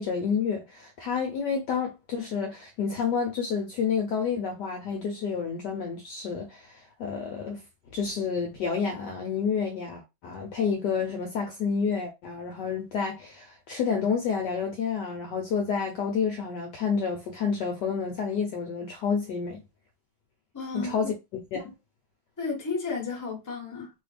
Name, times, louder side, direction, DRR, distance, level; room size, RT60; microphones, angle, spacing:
voice 1, 0.0-7.6 7.9-19.6 20.7-21.1 21.5-21.7, left 6 dB, 70° left, 1.0 m, -29 dB
voice 2, 20.5-21.1 22.4-23.9, left 4 dB, 15° left, 0.7 m, -33 dB
3.4 x 2.3 x 3.2 m
omnidirectional pair, 2.3 m